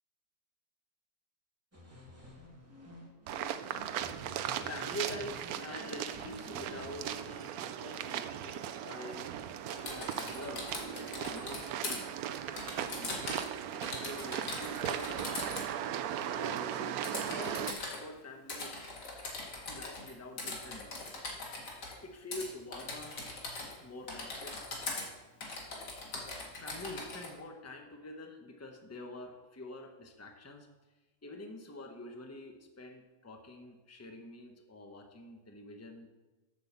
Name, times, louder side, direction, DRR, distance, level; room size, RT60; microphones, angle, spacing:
sound 1, 1.7-7.0, left 1 dB, 10° right, 1.9 m, -52 dB
sound 2, 3.3-17.7, right 10 dB, 70° right, 1.0 m, -38 dB
voice 1, 4.3-9.6 9.8-12.4 12.7-13.2 13.7-15.5 16.3-18.7 19.7-21.2 22.0-23.2 23.8-24.6 26.5-30.7 31.2-36.1, left 1 dB, 10° left, 3 dB, 0.8 m, -46 dB
Typing, 9.7-12.0 12.6-13.5 13.8-15.7 17.0-18.0 18.5-20.1 20.4-21.9 22.3-22.5 22.7-23.8 24.1-25.1 25.4-27.3, left 3 dB, 90° left, 2.5 m, -41 dB
7.7 x 7.7 x 7.0 m, 1.1 s
omnidirectional pair, 1.7 m